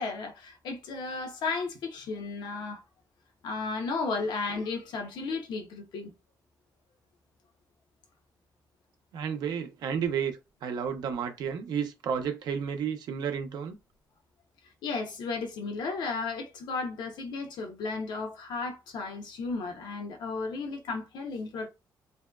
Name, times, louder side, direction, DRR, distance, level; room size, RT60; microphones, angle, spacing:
voice 1, 0.0-2.8 3.4-6.1 14.8-21.7, left 4 dB, 80° left, 0.7 m, -34 dB
voice 2, 9.1-10.3 10.6-13.8, right 7 dB, 70° right, 0.5 m, -31 dB
2.7 x 2.2 x 2.2 m
cardioid pair, 165°, 7 cm